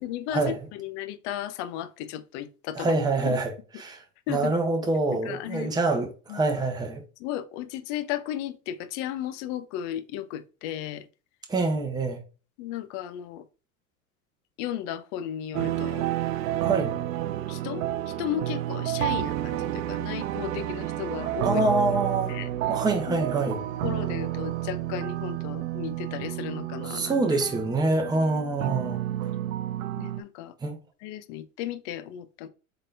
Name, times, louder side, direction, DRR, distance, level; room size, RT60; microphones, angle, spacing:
voice 1, 0.0-3.4 4.3-4.5 5.1-5.7 6.3-6.4 7.2-11.1 12.6-13.4 14.6-16.1 16.5-16.6 17.5-17.9 18.2-21.7 22.3-22.5 23.1-23.2 23.5-27.2 30.0-30.5 31.0-32.5, left 11 dB, 55° left, 0.6 m, -35 dB
voice 2, 2.7-7.0 11.5-12.2 16.6-17.0 21.4-22.3 22.7-23.6 26.9-29.0 30.6-30.8, right 3 dB, 10° right, 0.8 m, -26 dB
sound 1, 15.5-30.2, right 13 dB, 70° right, 0.5 m, -30 dB
3.8 x 3.7 x 2.6 m
hypercardioid pair, 85°, 43 cm